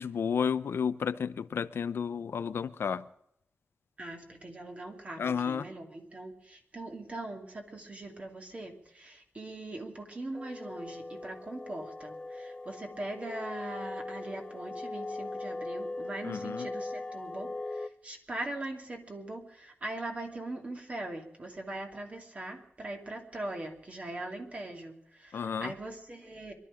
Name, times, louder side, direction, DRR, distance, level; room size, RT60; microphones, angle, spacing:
voice 1, 0.0-3.1 5.2-5.7 16.2-16.7 25.3-25.7, left 7 dB, 80° left, 13 dB, 0.7 m, -32 dB
voice 2, 4.0-26.5, right 2 dB, 35° right, 2 dB, 2.8 m, -41 dB
sound 1, 10.3-17.9, left 2 dB, 25° left, 0.5 m, -40 dB
22.5 x 12.5 x 5.0 m, 0.76 s
wide cardioid pair, 140°, 4 cm